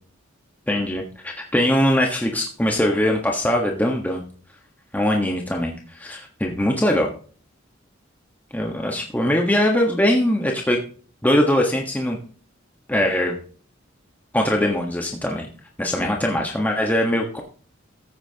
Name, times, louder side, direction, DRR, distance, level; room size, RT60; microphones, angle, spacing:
voice 1, 0.7-4.2 4.9-7.1 8.5-10.8 11.2-12.2 12.9-13.4 14.3-15.5 15.8-17.4, left 1 dB, 10° left, 1 dB, 1.4 m, -21 dB
15.0 x 8.5 x 2.9 m, 0.43 s
head